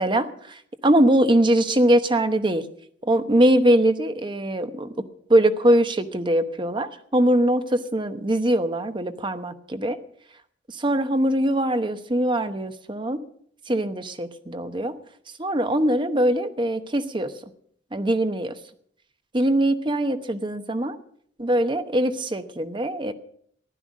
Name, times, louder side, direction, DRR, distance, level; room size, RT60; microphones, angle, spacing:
voice 1, 0.0-2.6 3.0-4.9 5.3-10.0 10.8-13.2 13.7-14.9 15.4-17.3 17.9-18.5 19.3-21.0 21.4-23.1, right 1 dB, 25° right, 9 dB, 1.0 m, -22 dB
15.0 x 12.0 x 6.3 m, 0.63 s
head